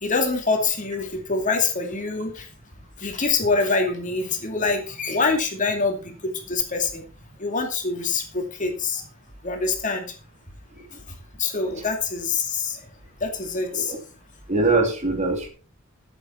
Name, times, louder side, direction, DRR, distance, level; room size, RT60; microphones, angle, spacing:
voice 1, 0.0-2.4 3.0-6.0 6.5-7.0 7.4-9.0 9.4-10.1 11.4-12.8 13.2-13.9, left 4 dB, 40° left, 3 dB, 2.5 m, -25 dB
voice 2, 14.5-15.5, right 3 dB, 35° right, 4 dB, 2.8 m, -22 dB
12.5 x 8.3 x 4.4 m, 0.35 s
head